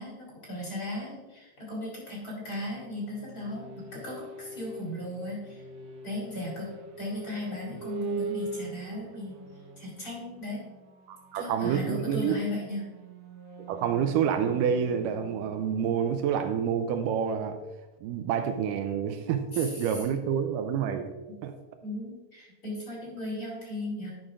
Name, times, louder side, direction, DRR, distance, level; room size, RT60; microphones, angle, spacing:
voice 1, 0.0-5.6 6.0-6.7 7.0-9.4 9.8-10.6 11.3-12.8 19.5-19.7 21.8-24.1, left 1 dB, 30° left, -4 dB, 3.3 m, -36 dB
sound 1, 2.5-17.1, right 4 dB, 65° right, 1.6 m, -43 dB
voice 2, 11.1-12.4 13.7-17.6 18.0-21.1 21.4-21.5, right 8 dB, 85° right, 7 dB, 2.1 m, -28 dB
10.5 x 10.0 x 2.5 m, 1.2 s
omnidirectional pair, 3.9 m